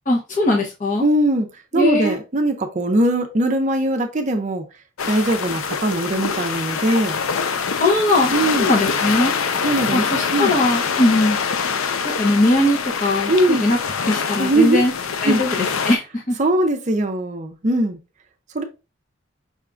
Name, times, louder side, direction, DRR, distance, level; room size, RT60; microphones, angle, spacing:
voice 1, 0.1-1.0 1.7-2.2 7.8-8.3 8.6-9.3 9.9-11.4 12.0-14.9 15.2-16.4, left 1 dB, 40° left, 0.8 m, -20 dB
voice 2, 1.0-1.5 1.7-4.6 5.1-7.2 8.3-8.7 9.6-10.0 10.3-10.6 13.3-13.7 14.4-14.8 15.2-15.4 16.4-18.0 18.5-18.6, right 1 dB, 35° right, 0.5 m, -20 dB
sound 1, 5.0-16.0, left 6 dB, 85° left, 0.6 m, -24 dB
5.6 x 3.6 x 2.4 m
head